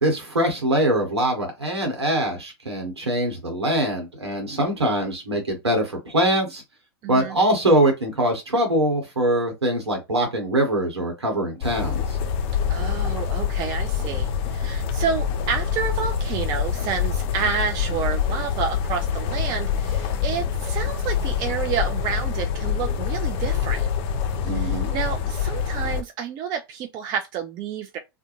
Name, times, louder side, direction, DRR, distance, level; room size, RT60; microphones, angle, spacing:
voice 1, 0.0-6.6 7.1-12.2 24.4-24.9, right 1 dB, 85° right, 1.0 m, -23 dB
voice 2, 7.0-7.4 12.7-23.9 24.5-28.0, right 7 dB, 30° right, 0.4 m, -29 dB
sound 1, 11.6-26.0, left 7 dB, 40° left, 0.5 m, -25 dB
2.4 x 2.1 x 2.9 m
figure-of-eight pair, 100°, 14 cm